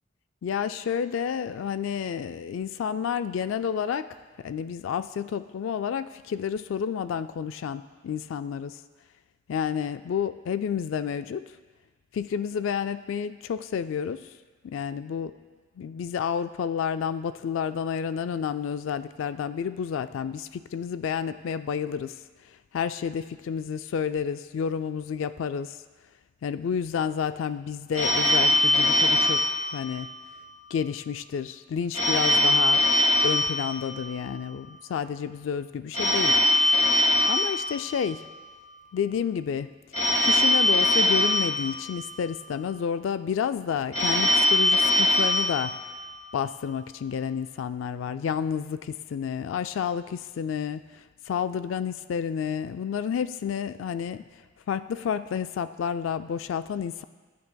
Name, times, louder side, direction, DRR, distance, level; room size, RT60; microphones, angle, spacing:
voice 1, 0.4-4.1 4.4-8.8 9.5-11.4 12.1-14.3 14.6-15.3 15.8-22.1 22.7-25.8 26.4-29.4 29.7-30.1 30.7-32.8 33.2-36.4 37.2-38.3 38.9-39.7 40.2-45.7 46.3-54.2 54.7-57.0, left 7 dB, 75° left, 12 dB, 0.3 m, -30 dB
Telephone, 27.9-30.4 31.9-34.4 35.9-38.4 39.9-42.4 43.9-46.4, left 1 dB, 40° left, 1.6 m, -23 dB
20.0 x 9.3 x 2.3 m, 1.4 s
head